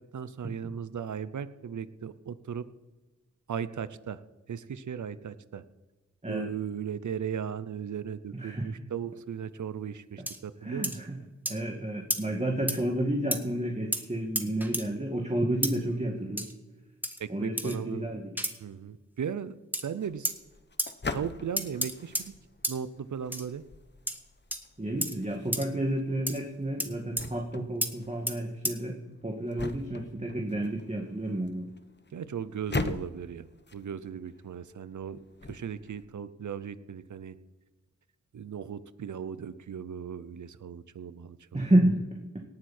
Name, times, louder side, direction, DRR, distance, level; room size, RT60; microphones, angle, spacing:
voice 1, 0.1-2.7 3.5-5.6 6.3-11.0 17.2-18.1 18.6-20.3 21.1-22.3 22.7-23.6 31.3-31.5 32.1-33.5 33.7-37.4 38.3-41.7, right 7 dB, 90° right, 15 dB, 0.7 m, -37 dB
voice 2, 8.3-8.7 10.6-11.2 11.5-16.5 17.3-18.3 24.8-29.0 29.2-31.7 41.5-42.4, right 1 dB, 25° right, 1 dB, 2.1 m, -30 dB
sound 1, 10.3-10.4 10.8-11.0 11.5-11.6 12.1-12.2 12.7-12.8 13.3-13.4 13.9-14.0 14.4-14.9 15.6-15.7 16.4-16.5 17.0-17.2 17.6-17.8 18.4-18.5 19.7-19.8 20.2-20.4 20.8-20.9 21.6-22.3 22.6-22.8 23.3-23.5 24.1-24.2 24.5-24.6 25.0-25.2 25.5-25.7 26.3-26.4 26.8-26.9 27.2-27.3 27.8-27.9 28.3-28.4 28.6-28.8, equal, 5° right, 1.8 m, -31 dB
sound 2, 19.9-36.1, left 3 dB, 35° left, 1.1 m, -42 dB
18.5 x 9.5 x 4.4 m, 1.2 s
cardioid pair, 45°, 29 cm